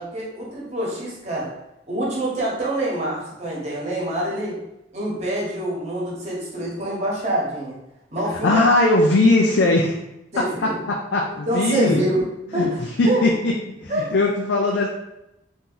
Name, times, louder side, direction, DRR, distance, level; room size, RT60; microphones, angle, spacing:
voice 1, 0.0-1.5 1.9-4.6 4.9-7.8 8.1-8.6 10.3-10.8 11.5-12.2 12.5-13.2 13.9-14.1, right 1 dB, 40° right, -4 dB, 1.1 m, -26 dB
voice 2, 8.2-10.0 10.4-12.0 12.5-12.7 13.0-14.9, left 2 dB, 80° left, -1 dB, 0.5 m, -20 dB
2.9 x 2.6 x 3.8 m, 0.87 s
head